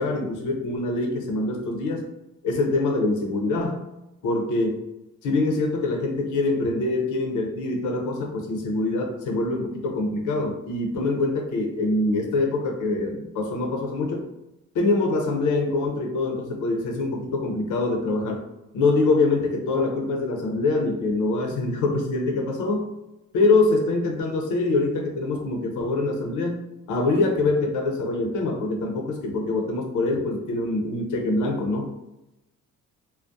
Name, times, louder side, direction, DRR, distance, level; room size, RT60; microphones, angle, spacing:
voice 1, 0.0-2.0 2.4-3.8 4.2-4.8 5.2-14.2 14.7-18.5 18.7-22.9 23.3-26.6 26.9-31.9, left 2 dB, 80° left, 2 dB, 0.6 m, -24 dB
2.3 x 2.0 x 2.6 m, 0.93 s
cardioid pair, 90°, 30 cm